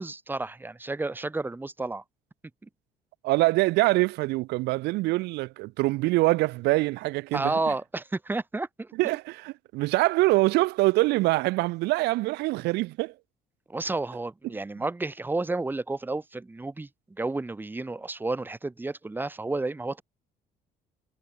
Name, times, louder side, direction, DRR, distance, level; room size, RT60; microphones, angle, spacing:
voice 1, 0.0-2.0 7.3-8.9 13.7-20.0, right 2 dB, 10° right, 1.0 m, -31 dB
voice 2, 3.2-7.5 9.0-13.1, right 21 dB, 85° right, 0.5 m, -24 dB
cardioid pair, 110°, 17 cm